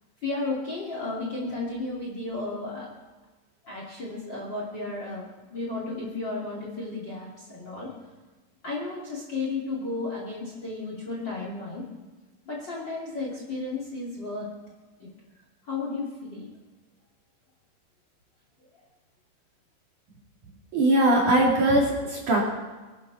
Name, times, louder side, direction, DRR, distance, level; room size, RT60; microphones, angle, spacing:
voice 1, 0.2-2.9 3.6-7.9 8.6-11.8 12.4-14.5 15.0-15.1 15.6-16.5, left 3 dB, 30° left, -2 dB, 2.7 m, -33 dB
voice 2, 20.7-22.4, right 1 dB, 50° right, -3 dB, 3.3 m, -21 dB
24.5 x 10.5 x 4.1 m, 1.3 s
omnidirectional pair, 5.3 m